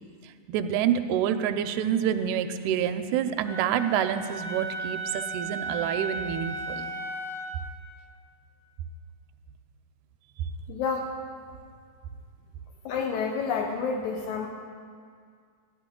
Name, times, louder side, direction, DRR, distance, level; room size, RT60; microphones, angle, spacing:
voice 1, 0.5-6.9, right 9 dB, 80° right, 9 dB, 1.9 m, -27 dB
Wind instrument woodwind instrument, 3.5-7.6, right 2 dB, 55° left, 2.3 m, -35 dB
voice 2, 10.7-11.1 12.9-14.5, left 5 dB, 80° left, 1 dB, 2.0 m, -29 dB
12.0 x 11.0 x 3.7 m, 2.1 s
omnidirectional pair, 3.5 m